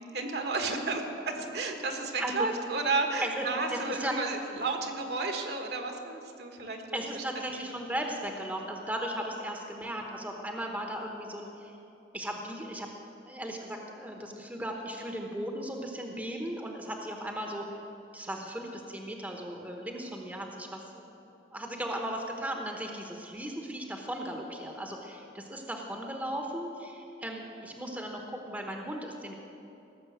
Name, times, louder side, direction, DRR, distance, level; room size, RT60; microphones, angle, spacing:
voice 1, 0.0-7.2, right 3 dB, 60° right, 4 dB, 1.4 m, -32 dB
voice 2, 3.2-4.1 6.9-11.8 12.1-12.9 13.3-17.6 18.1-21.0 21.5-29.4, right 1 dB, 10° right, 2 dB, 1.0 m, -36 dB
17.5 x 6.9 x 7.9 m, 2.9 s
head